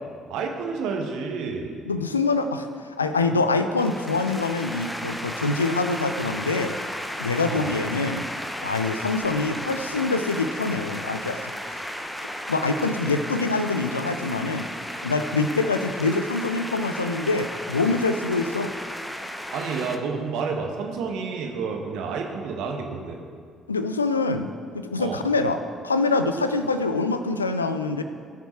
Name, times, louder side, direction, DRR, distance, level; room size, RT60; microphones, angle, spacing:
voice 1, 0.3-1.8 7.5-7.7 19.5-23.2 25.0-25.2, right 5 dB, 60° right, 2 dB, 1.3 m, -30 dB
voice 2, 1.9-6.8 7.2-8.3 8.6-11.8 12.5-14.7 15.0-18.7 23.7-28.0, left 3 dB, 85° left, 9 dB, 0.4 m, -25 dB
sound 1, 3.8-20.0, equal, 5° left, 0.9 m, -34 dB
17.5 x 6.0 x 4.3 m, 2.1 s
figure-of-eight pair, 45°, 0 cm